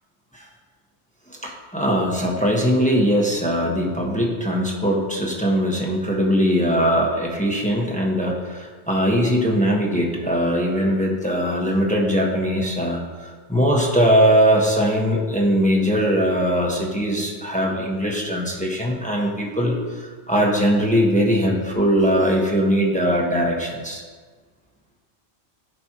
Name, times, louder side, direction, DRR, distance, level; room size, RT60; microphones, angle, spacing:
voice 1, 1.4-24.0, equal, 5° left, -2 dB, 1.2 m, -21 dB
15.0 x 5.4 x 3.0 m, 1.5 s
omnidirectional pair, 1.3 m